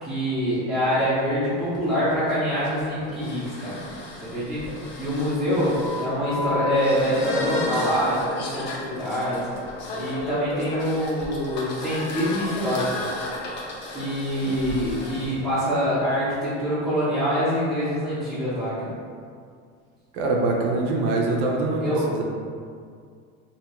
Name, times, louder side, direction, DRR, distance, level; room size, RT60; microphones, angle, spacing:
voice 1, 0.0-3.8 4.2-4.6 5.0-9.5 9.9-13.0 13.9-18.9 21.8-21.9, equal, ahead, -16 dB, 0.7 m, -25 dB
radio tuning, 1.6-15.3, left 2 dB, 35° left, 0.4 m, -33 dB
voice 2, 14.5-14.8 20.1-22.3, right 2 dB, 65° right, 0 dB, 0.6 m, -24 dB
2.6 x 2.3 x 3.0 m, 2.2 s
supercardioid pair, 150°, 35 cm